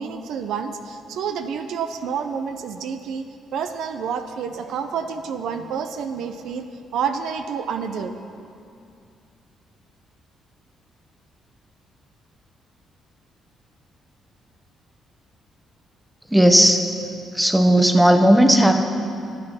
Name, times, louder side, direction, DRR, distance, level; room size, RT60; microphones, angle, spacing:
voice 1, 0.0-3.3 3.5-8.1, right 6 dB, 80° right, 8 dB, 0.6 m, -29 dB
voice 2, 16.3-16.9 17.3-18.8, right 1 dB, 5° right, 6 dB, 1.1 m, -15 dB
13.5 x 9.1 x 5.6 m, 2.4 s
cardioid pair, 90°, 0 cm